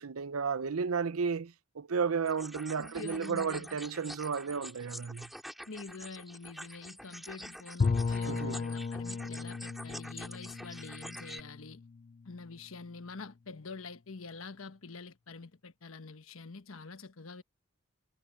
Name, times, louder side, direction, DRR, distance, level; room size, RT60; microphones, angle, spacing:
voice 1, 0.0-5.3 8.3-8.6, right 5 dB, 90° right, 0.7 m, -33 dB
sound 1, 2.3-11.4, equal, ahead, 5.0 m, -47 dB
voice 2, 2.8-3.8 5.7-11.8 12.2-17.4, left 4 dB, 70° left, 1.2 m, -46 dB
Bowed string instrument, 7.8-12.6, left 4 dB, 35° left, 0.3 m, -35 dB
head